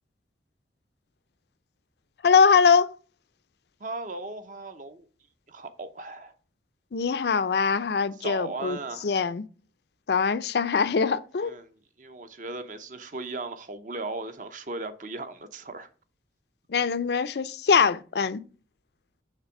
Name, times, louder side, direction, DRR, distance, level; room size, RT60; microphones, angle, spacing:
voice 1, 2.2-3.0 6.9-8.8 9.0-9.4 10.1-11.5 16.7-18.4, left 5 dB, 65° left, 0.5 m, -22 dB
voice 2, 3.8-5.0 5.5-6.3 8.2-9.1 11.4-15.9, right 3 dB, 45° right, 0.8 m, -37 dB
6.6 x 3.4 x 5.9 m
head